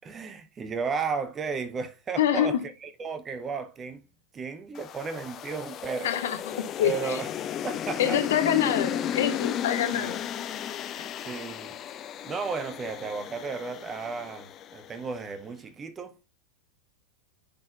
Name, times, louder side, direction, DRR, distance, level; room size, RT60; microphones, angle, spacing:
voice 1, 0.0-4.0 4.3-6.1 6.8-7.3 7.6-8.2 9.9-10.2 11.2-11.8 12.2-16.2, right 5 dB, 20° right, 0.6 m, -34 dB
voice 2, 2.2-2.6 6.0-6.9 8.0-10.2 11.0-11.1, left 10 dB, 60° left, 0.8 m, -26 dB
sound 1, 4.8-15.1, left 9 dB, 30° left, 0.5 m, -34 dB
9.8 x 4.2 x 2.3 m
figure-of-eight pair, 90°, 0 cm